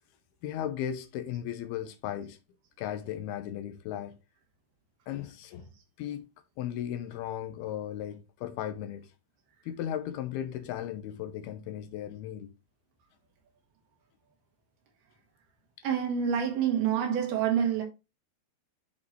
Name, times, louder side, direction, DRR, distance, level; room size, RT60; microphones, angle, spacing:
voice 1, 0.4-2.4 2.8-4.2 5.1-5.7 6.0-6.2 6.6-9.1 9.7-12.5, left 10 dB, 80° left, 2.4 m, -36 dB
voice 2, 15.8-17.8, right 8 dB, 65° right, 3.5 m, -27 dB
10.5 x 3.7 x 3.1 m
omnidirectional pair, 4.9 m